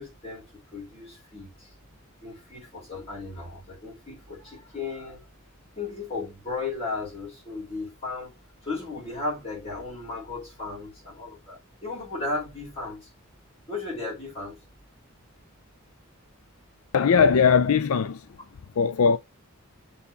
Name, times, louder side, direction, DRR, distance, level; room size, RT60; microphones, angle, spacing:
voice 1, 0.0-1.7 2.2-5.2 5.8-8.3 8.6-13.1 13.7-14.6, left 3 dB, 30° left, 5.3 m, -35 dB
voice 2, 16.9-18.3 18.8-19.2, left 6 dB, 80° left, 0.5 m, -20 dB
6.8 x 4.2 x 4.2 m
head